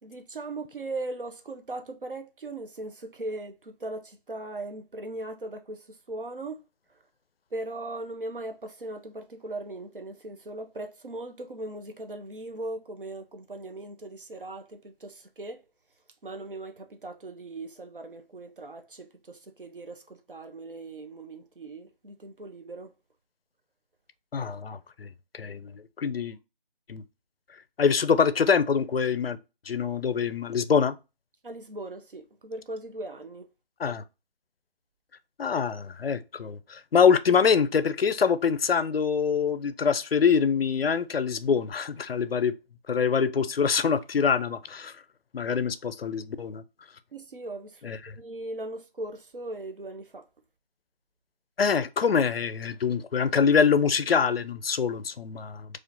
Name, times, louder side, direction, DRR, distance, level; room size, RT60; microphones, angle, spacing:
voice 1, 0.0-6.6 6.9-7.0 7.5-15.6 16.2-22.9 31.4-33.5 47.1-47.8 48.2-50.3, right 2 dB, 60° right, 0.7 m, -39 dB
voice 2, 24.3-25.1 25.3-26.4 26.9-27.0 27.8-29.4 29.7-31.0 33.8-34.0 35.4-42.5 42.9-44.9 45.3-46.6 47.8-48.0 51.6-55.7, left 6 dB, 75° left, 0.5 m, -24 dB
4.2 x 2.5 x 2.6 m
figure-of-eight pair, 175°, 30 cm